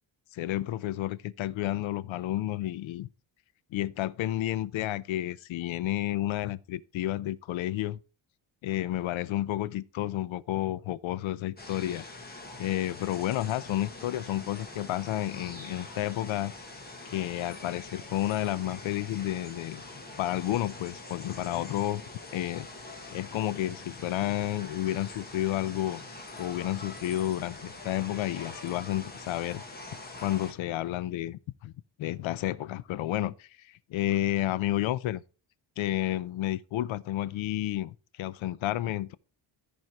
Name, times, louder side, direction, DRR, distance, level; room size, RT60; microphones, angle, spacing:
voice 1, 0.3-3.1 3.7-8.0 8.6-12.0 12.6-16.5 17.0-19.8 20.2-22.0 22.3-22.7 23.1-26.0 26.4-29.6 30.2-31.7 32.0-35.2 35.8-39.2, left 14 dB, 80° left, 0.6 m, -31 dB
sound 1, 11.6-30.5, left 2 dB, 20° left, 1.2 m, -44 dB
13.5 x 4.6 x 4.5 m
wide cardioid pair, 180°, 46 cm